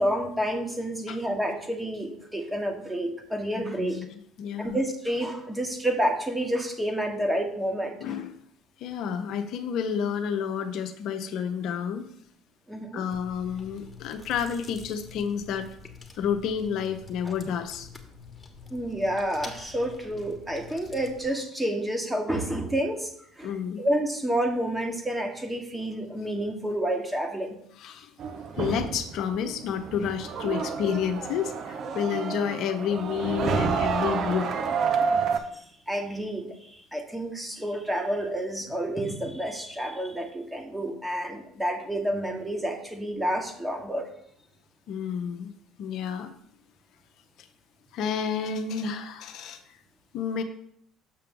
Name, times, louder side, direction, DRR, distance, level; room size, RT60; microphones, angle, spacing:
voice 1, 0.0-4.0 4.6-8.0 12.7-13.0 17.2-17.3 18.7-23.1 23.4-23.5 23.8-27.6 35.5-44.1, right 1 dB, 10° right, 4 dB, 1.3 m, -29 dB
voice 2, 3.6-4.8 8.0-8.3 8.8-12.1 12.9-15.7 16.2-17.9 23.4-23.9 27.8-28.1 28.6-34.5 44.9-45.5 45.8-46.3 47.4-47.5 47.9-49.6 50.1-50.4, left 7 dB, 65° left, 7 dB, 0.6 m, -30 dB
Chewing mastication, 13.1-21.3, left 5 dB, 25° left, 1.2 m, -47 dB
sound 1, 28.2-35.4, right 6 dB, 55° right, 0.7 m, -29 dB
6.8 x 5.6 x 3.7 m, 0.69 s
hypercardioid pair, 65°, 0 cm